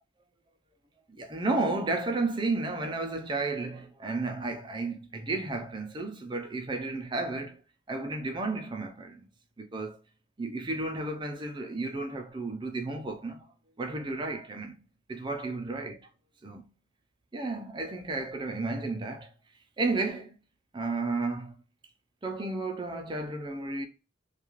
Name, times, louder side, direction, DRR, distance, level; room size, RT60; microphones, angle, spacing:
voice 1, 1.1-7.6 7.9-9.3 9.6-10.0 10.4-13.4 13.8-14.7 15.1-16.0 16.4-16.6 17.3-19.3 19.8-20.4 20.7-21.5 22.2-23.9, right 3 dB, 25° right, 0.4 m, -32 dB
2.4 x 2.3 x 2.9 m
head